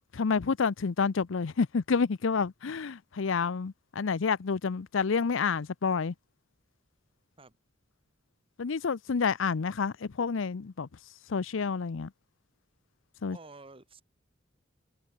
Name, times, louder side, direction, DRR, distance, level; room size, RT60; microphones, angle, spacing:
voice 1, 0.1-6.1 8.6-10.9 11.3-12.1 13.2-13.4, left 5 dB, 75° left, 0.6 m, -29 dB
voice 2, 13.3-14.0, right 3 dB, 30° right, 2.6 m, -50 dB
head